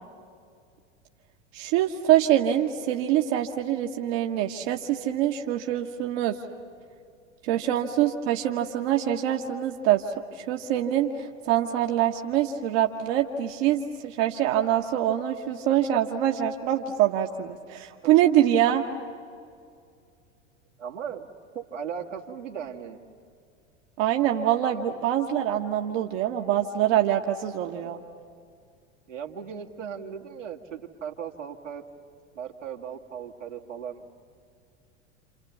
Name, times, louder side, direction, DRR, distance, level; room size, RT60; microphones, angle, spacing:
voice 1, 1.5-6.4 7.4-10.0 10.4-18.8 24.0-28.0, right 11 dB, 55° right, 3 dB, 1.4 m, -24 dB
voice 2, 20.8-21.3 21.5-23.0 24.7-25.0 27.7-27.9 29.1-31.8 32.3-34.0, right 7 dB, 85° right, 0 dB, 2.1 m, -37 dB
28.5 x 28.0 x 7.0 m, 2.3 s
figure-of-eight pair, 85°, 37 cm